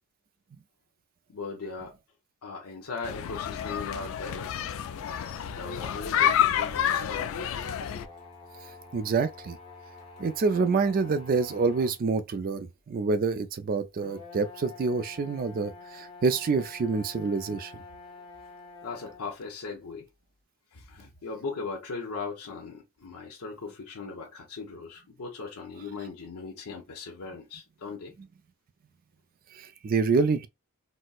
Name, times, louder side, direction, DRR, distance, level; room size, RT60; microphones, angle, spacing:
voice 1, 1.3-2.0 2.4-4.5 5.5-7.4 18.8-20.1 20.7-28.1, left 4 dB, 80° left, 0.8 m, -38 dB
sound 1, 3.0-8.1, left 10 dB, 60° left, 0.3 m, -29 dB
sound 2, 7.9-12.0 12.7-12.8 14.0-19.3, left 4 dB, 20° left, 0.9 m, -48 dB
voice 2, 8.9-9.6 10.2-17.7 29.6-30.5, right 4 dB, 40° right, 0.3 m, -27 dB
4.1 x 2.0 x 2.3 m
head